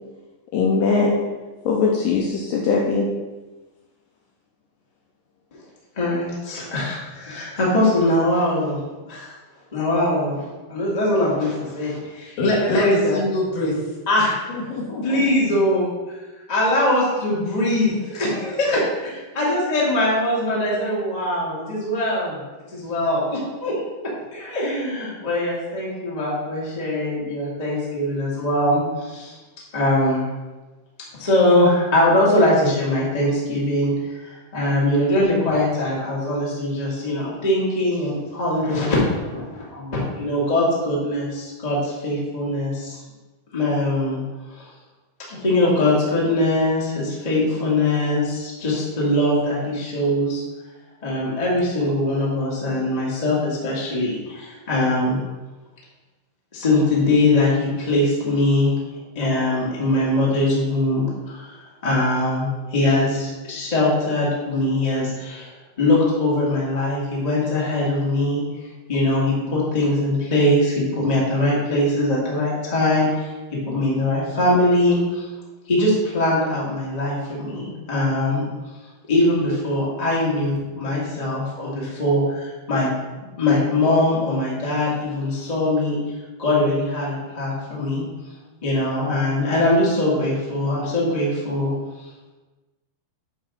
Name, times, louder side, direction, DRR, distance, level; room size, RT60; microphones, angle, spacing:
voice 1, 0.5-1.2 1.7-3.1, left 4 dB, 85° left, -1 dB, 2.0 m, -20 dB
voice 2, 5.9-8.8 9.1-9.3 9.7-12.4 12.6-13.2 14.1-14.4 15.0-16.2 16.5-22.4 22.7-23.7 24.3-29.3 29.7-30.3 31.2-43.0 43.5-44.2 44.5-44.7 45.3-50.4 51.0-55.2 56.5-61.5 61.8-65.4 65.8-68.4 68.9-75.3 75.6-78.4 79.1-82.9 83.4-86.0 86.4-88.0 88.6-91.7, left 1 dB, 30° left, -6 dB, 0.6 m, -22 dB
voice 3, 12.4-13.7 14.5-15.2, left 1 dB, 65° left, -4 dB, 3.0 m, -23 dB
8.4 x 3.0 x 6.2 m, 1.2 s
omnidirectional pair, 4.6 m